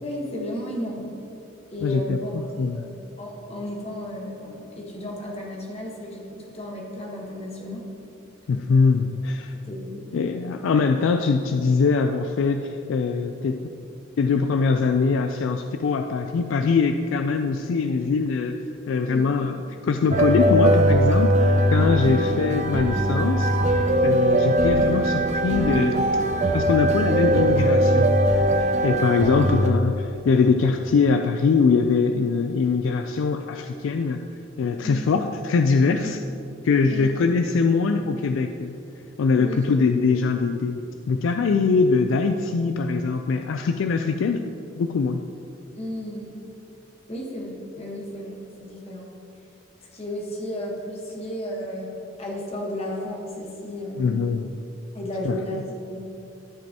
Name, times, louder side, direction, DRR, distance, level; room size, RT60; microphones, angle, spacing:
voice 1, 0.0-1.1 1.7-2.9 3.2-7.9 9.7-10.2 19.1-19.3 22.1-22.2 29.2-29.3 34.8-35.1 36.9-37.2 39.4-39.7 45.8-46.3 47.1-49.1 49.9-51.9 52.2-54.2 54.9-56.0, left 1 dB, 30° left, -2 dB, 1.2 m, -33 dB
voice 2, 1.8-2.9 8.5-9.5 10.1-13.6 14.2-18.6 18.9-26.0 26.5-28.1 28.6-34.2 34.6-36.2 36.6-38.8 39.2-40.8 41.1-44.4 44.8-45.2 54.0-54.5 55.2-55.4, left 4 dB, 80° left, 6 dB, 0.3 m, -22 dB
sound 1, 20.1-29.7, right 1 dB, 35° right, 0.4 m, -20 dB
12.5 x 5.2 x 2.9 m, 2.8 s
head